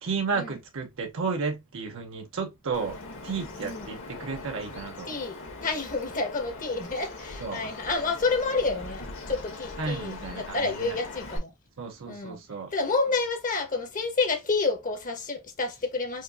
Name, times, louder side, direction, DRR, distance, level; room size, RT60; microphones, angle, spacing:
voice 1, 0.0-5.2 7.4-7.8 9.8-11.0 11.8-12.7, right 4 dB, 60° right, 0.6 m, -33 dB
Bird vocalization bird call bird song, 2.7-11.4, left 3 dB, 60° left, 1.5 m, -41 dB
voice 2, 5.6-11.5 12.1-12.4 12.7-16.2, left 3 dB, 35° left, 1.0 m, -29 dB
4.5 x 2.6 x 2.3 m
head